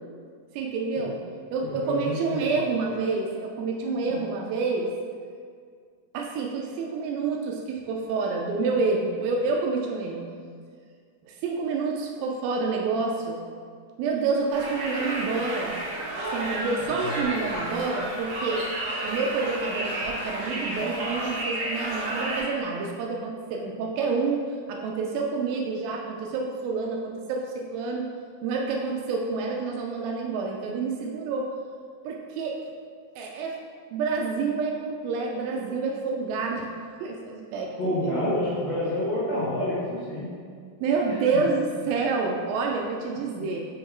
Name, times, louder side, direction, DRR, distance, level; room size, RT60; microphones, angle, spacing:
voice 1, 0.5-1.2 1.5-4.9 6.1-10.2 11.2-13.4 14.0-15.8 16.3-18.7 19.0-28.1 28.4-31.5 32.1-32.6 33.2-33.6 33.9-36.7 37.0-38.4 40.8-43.6, right 4 dB, 90° right, 0 dB, 2.0 m, -28 dB
voice 2, 1.8-2.5 3.8-4.2 16.9-17.2 37.8-40.3 41.1-41.2 43.4-43.5, left 1 dB, 65° left, -9 dB, 1.6 m, -29 dB
Conversation, 14.5-22.4, right 1 dB, 60° right, 1.7 m, -31 dB
6.1 x 3.6 x 4.5 m, 2.1 s
omnidirectional pair, 4.7 m